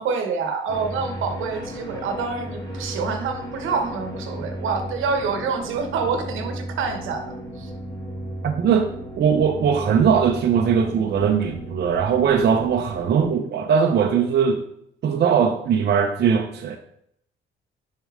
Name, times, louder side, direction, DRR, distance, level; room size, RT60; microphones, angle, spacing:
voice 1, 0.0-7.7, right 5 dB, 85° right, 5 dB, 1.1 m, -27 dB
sound 1, 0.7-13.2, equal, 20° left, 2.3 m, -35 dB
voice 2, 8.4-8.9 9.2-14.6 15.0-16.8, right 7 dB, 55° right, 2 dB, 0.8 m, -20 dB
6.9 x 5.5 x 3.7 m, 0.71 s
cardioid pair, 90°, 20 cm